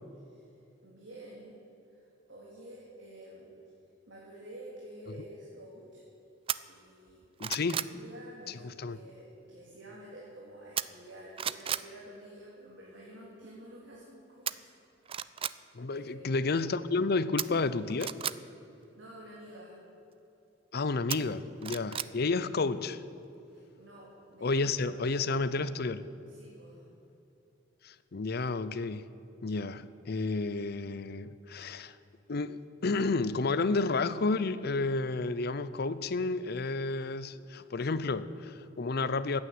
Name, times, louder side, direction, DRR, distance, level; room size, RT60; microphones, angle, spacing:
voice 1, 0.8-1.5 1.9-3.5 4.0-6.0 6.7-7.2 7.6-14.7 15.9-16.3 18.7-19.8 23.5-25.0 26.3-26.8, right 1 dB, 85° right, 3.2 m, -50 dB
sound 1, 6.5-6.6 7.1-8.0 10.8-11.1 11.4-11.9 14.5-14.6 15.0-15.6 17.4-18.4 21.1-22.1 22.5-22.6, right 9 dB, 30° right, 0.4 m, -34 dB
voice 2, 7.4-7.9 8.5-9.0 15.7-18.2 20.7-23.0 24.4-26.0 27.8-29.1 29.4-32.0 32.3-39.4, left 3 dB, 55° left, 0.6 m, -31 dB
14.5 x 9.7 x 9.3 m
head